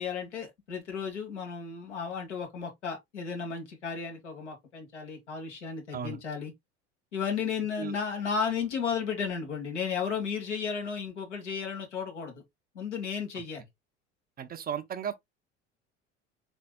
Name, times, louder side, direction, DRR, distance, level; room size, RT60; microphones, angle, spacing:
voice 1, 0.0-6.5 7.1-12.4 12.7-13.6, left 6 dB, 75° left, 1.6 m, -34 dB
voice 2, 14.4-15.2, right 8 dB, 25° right, 0.6 m, -35 dB
4.3 x 4.1 x 2.2 m
figure-of-eight pair, 70°, 36 cm